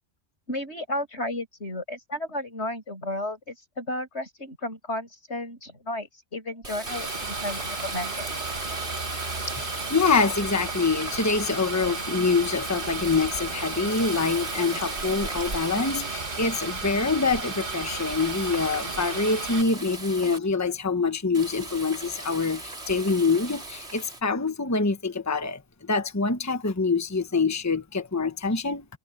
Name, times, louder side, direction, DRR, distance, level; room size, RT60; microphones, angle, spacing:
voice 1, 0.5-8.3, left 1 dB, 85° left, 8.5 m, -33 dB
Water tap faucet, 6.6-20.4 21.3-24.2, right 2 dB, 80° right, 4.2 m, -38 dB
sound 1, 6.9-19.6, right 3 dB, 50° right, 2.2 m, -34 dB
voice 2, 9.9-28.8, left 4 dB, 15° left, 1.0 m, -25 dB
omnidirectional pair, 1.1 m